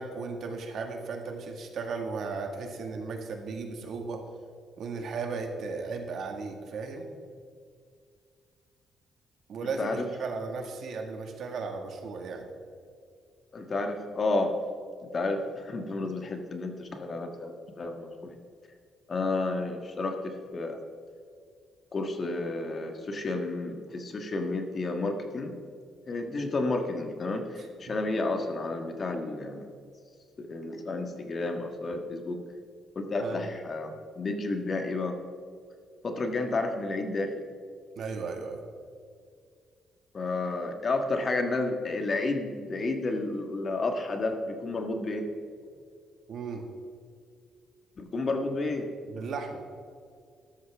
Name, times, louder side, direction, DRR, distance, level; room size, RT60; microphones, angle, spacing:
voice 1, 0.0-4.2 4.8-7.1 9.5-12.5 27.9-28.0 33.2-33.5 37.9-38.6 46.3-46.7 49.1-49.6, right 4 dB, 65° right, 3 dB, 1.8 m, -35 dB
voice 2, 9.6-10.0 13.5-14.5 15.1-18.4 19.1-20.8 21.9-25.6 26.1-29.7 30.4-32.4 32.9-35.2 36.0-37.5 40.1-45.3 48.0-48.9, left 2 dB, 40° left, 5 dB, 1.5 m, -31 dB
14.0 x 12.0 x 3.5 m, 2.2 s
cardioid pair, 90°, 0 cm